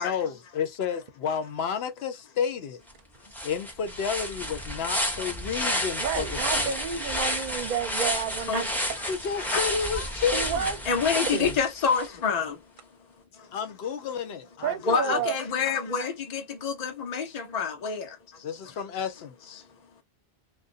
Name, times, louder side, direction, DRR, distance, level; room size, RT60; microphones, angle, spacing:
voice 1, 0.0-2.8 3.4-6.7 9.1-10.7 13.5-15.1 18.4-19.6, left 7 dB, 85° left, 0.9 m, -31 dB
sound 1, 2.9-3.0 3.3-12.1, equal, ahead, 0.7 m, -31 dB
voice 2, 6.0-8.7 10.3-10.8 11.3-11.6 14.6-15.4, right 7 dB, 55° right, 0.7 m, -30 dB
voice 3, 8.5-8.9 9.4-9.6 9.9-10.1 10.9-12.6 13.3-13.5 14.9-18.4, left 6 dB, 45° left, 0.8 m, -28 dB
2.5 x 2.2 x 2.4 m
omnidirectional pair, 1.0 m